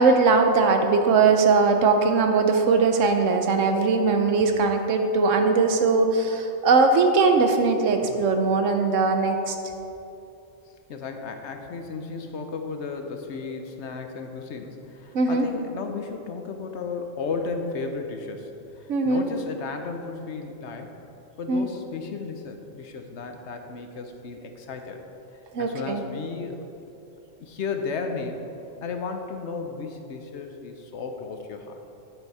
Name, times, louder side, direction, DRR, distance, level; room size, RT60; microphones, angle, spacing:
voice 1, 0.0-9.5 15.1-15.5 18.9-19.2 21.5-21.7 25.5-26.0, right 4 dB, 75° right, 5 dB, 1.1 m, -20 dB
voice 2, 10.9-20.9 21.4-25.0 25.6-26.9 27.4-28.5 28.8-31.8, left 4 dB, 65° left, 5 dB, 1.0 m, -34 dB
9.1 x 8.2 x 4.1 m, 2.9 s
omnidirectional pair, 1.3 m